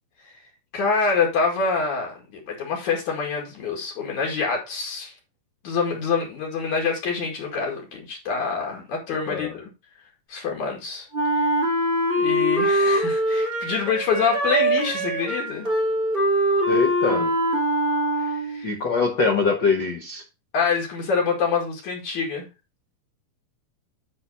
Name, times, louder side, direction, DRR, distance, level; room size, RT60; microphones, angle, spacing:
voice 1, 0.7-5.1 5.6-9.7 10.3-11.1 12.2-15.7 18.2-18.8 20.5-22.5, left 5 dB, 65° left, 3.5 m, -26 dB
voice 2, 9.1-9.6 16.7-17.3 18.6-20.2, left 4 dB, 80° left, 1.0 m, -23 dB
Wind instrument woodwind instrument, 11.1-18.7, right 1 dB, 20° right, 1.6 m, -23 dB
8.7 x 3.9 x 5.4 m
omnidirectional pair, 3.7 m